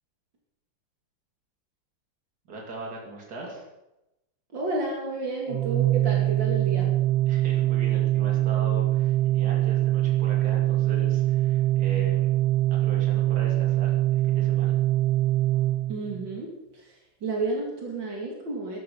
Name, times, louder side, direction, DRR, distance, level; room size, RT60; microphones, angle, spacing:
voice 1, 2.5-3.6 7.3-12.3 12.7-14.8, right 2 dB, 55° right, -1 dB, 3.1 m, -40 dB
voice 2, 4.5-6.9 15.9-16.5 16.8-18.8, right 3 dB, 70° right, -1 dB, 3.1 m, -31 dB
Organ, 5.5-16.4, right 14 dB, 90° right, 1.4 m, -23 dB
13.0 x 11.5 x 5.3 m, 0.92 s
omnidirectional pair, 2.1 m